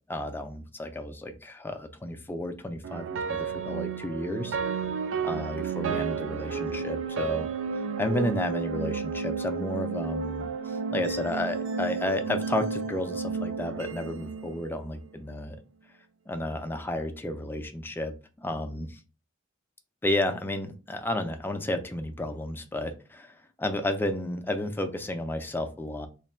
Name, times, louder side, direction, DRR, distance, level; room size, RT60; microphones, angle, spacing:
voice 1, 0.1-4.6 5.2-7.5 7.8-15.6 16.3-19.0 20.0-26.1, left 1 dB, 10° left, 6 dB, 0.4 m, -32 dB
sound 1, 2.8-15.1, right 6 dB, 65° right, 0.4 m, -32 dB
3.2 x 2.2 x 4.2 m, 0.34 s
head